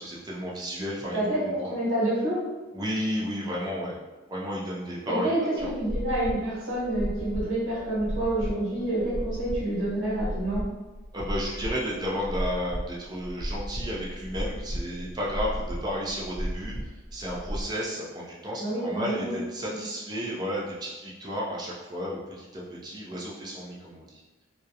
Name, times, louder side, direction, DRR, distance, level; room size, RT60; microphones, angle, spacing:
voice 1, 0.0-1.2 1.4-1.7 2.7-4.0 4.3-5.7 11.1-16.7 17.1-24.2, equal, 20° right, -4 dB, 0.4 m, -32 dB
voice 2, 1.1-2.4 5.1-10.6 18.6-19.3, right 1 dB, 90° right, -9 dB, 1.0 m, -28 dB
sound 1, 5.6-17.6, equal, 15° left, 0.7 m, -34 dB
2.3 x 2.0 x 2.7 m, 1.2 s
head